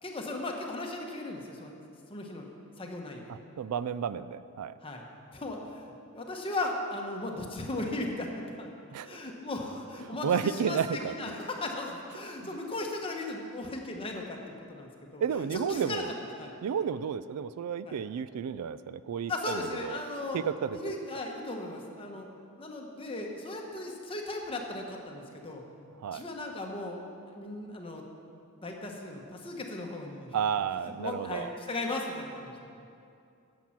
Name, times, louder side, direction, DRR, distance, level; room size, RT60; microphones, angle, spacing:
voice 1, 0.0-1.7 2.1-2.5 2.8-3.3 4.8-5.1 5.3-8.7 9.0-15.2 15.5-16.5 17.9-18.0 19.3-20.4 20.7-22.3 22.6-25.6 26.1-27.0 27.3-28.0 28.6-30.3 30.8-32.8, left 2 dB, 25° left, 1 dB, 1.1 m, -37 dB
voice 2, 3.3-4.7 8.9-9.2 10.0-11.1 15.2-16.1 16.6-20.0 20.3-20.8 26.0-26.2 30.3-31.5, right 7 dB, 85° right, 15 dB, 0.3 m, -32 dB
10.5 x 7.5 x 5.8 m, 2.5 s
head